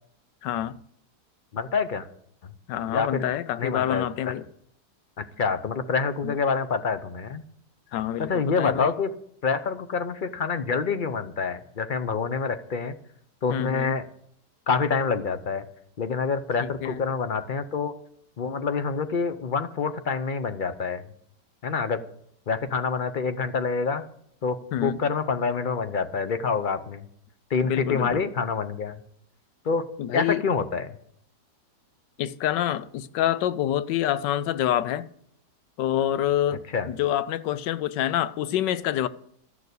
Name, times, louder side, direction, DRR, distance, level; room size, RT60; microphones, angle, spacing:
voice 1, 0.4-0.8 2.7-4.4 6.2-6.3 7.9-8.9 13.5-13.9 16.6-17.0 24.7-25.0 27.6-28.2 30.0-30.4 32.2-35.1 35.8-39.1, left 11 dB, 90° left, 1.3 m, -27 dB
voice 2, 1.5-2.1 2.9-3.2 3.6-4.3 5.2-7.4 8.2-9.1 9.4-12.9 13.4-14.1 14.7-15.6 16.0-17.9 18.4-21.0 21.6-22.0 22.5-24.0 24.4-27.0 27.5-29.0 29.6-29.8 30.1-30.9 36.7-36.9, left 5 dB, 55° left, 0.5 m, -27 dB
13.0 x 6.7 x 8.2 m
omnidirectional pair, 1.8 m